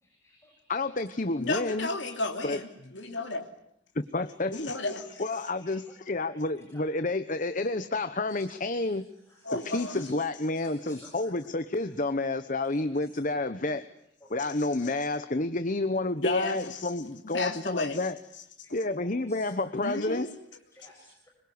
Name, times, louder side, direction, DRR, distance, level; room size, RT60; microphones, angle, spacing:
voice 1, 0.0-0.6 5.0-5.8 6.3-6.4 6.7-6.8 9.3-10.1 10.5-11.1 12.5-12.6 13.4-13.5 14.2-14.9 18.6-18.7 19.0-19.4 20.7-21.3, left 1 dB, 15° left, 0 dB, 6.8 m, -54 dB
voice 2, 0.7-1.9 2.4-2.6 3.9-4.5 5.2-9.0 9.7-13.9 14.3-18.2 18.7-20.3, left 2 dB, 40° left, 10 dB, 1.0 m, -30 dB
voice 3, 1.4-3.5 4.5-5.2 9.4-10.0 16.2-16.9 17.3-18.0 19.8-20.3, left 2 dB, 70° left, 3 dB, 3.0 m, -32 dB
25.5 x 22.5 x 9.6 m, 0.75 s
head